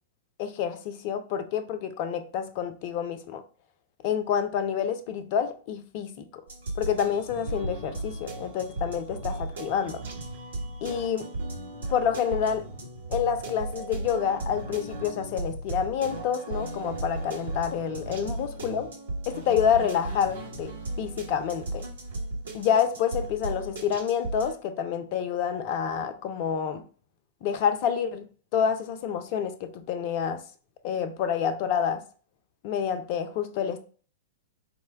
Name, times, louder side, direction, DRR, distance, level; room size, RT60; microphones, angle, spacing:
voice 1, 0.4-3.4 4.0-6.4 6.8-10.0 10.8-11.3 11.9-12.7 13.1-18.9 19.3-21.9 22.5-26.8 27.4-28.2 28.5-30.4 30.8-32.0 32.6-33.8, left 8 dB, 40° left, 0.5 m, -28 dB
sound 1, 6.5-24.5, right 2 dB, 65° right, 1.0 m, -36 dB
4.3 x 2.2 x 3.4 m
figure-of-eight pair, 100°, 0 cm